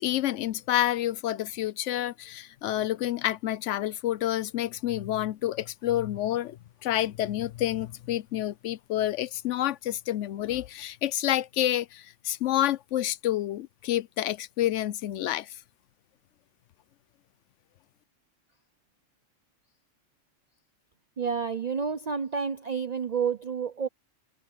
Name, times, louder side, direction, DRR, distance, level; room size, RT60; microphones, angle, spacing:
voice 1, 0.0-15.6, left 13 dB, 75° left, 1.0 m, -29 dB
voice 2, 21.2-23.9, right 6 dB, 40° right, 0.7 m, -29 dB
omnidirectional pair, 1.3 m